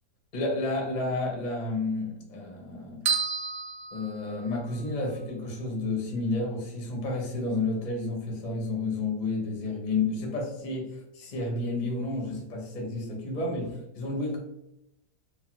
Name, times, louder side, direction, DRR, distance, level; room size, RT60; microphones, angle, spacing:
voice 1, 0.3-3.0 3.9-14.4, left 3 dB, 55° left, -1 dB, 0.4 m, -31 dB
sound 1, 3.1-4.8, right 5 dB, 75° right, 0.6 m, -31 dB
3.1 x 2.0 x 2.9 m, 0.87 s
omnidirectional pair, 1.9 m